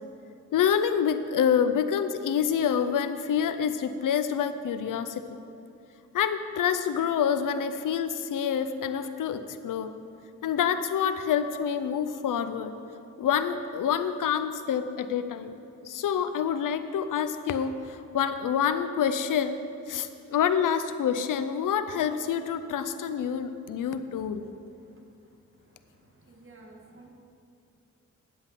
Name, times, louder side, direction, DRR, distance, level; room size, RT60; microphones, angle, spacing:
voice 1, 0.5-5.2 6.1-9.9 10.4-12.7 13.2-19.6 19.9-24.4, left 8 dB, 90° left, 10 dB, 0.6 m, -27 dB
voice 2, 26.3-27.1, right 2 dB, 40° right, 0 dB, 1.9 m, -51 dB
10.5 x 8.1 x 5.6 m, 2.8 s
cardioid pair, 75°, 31 cm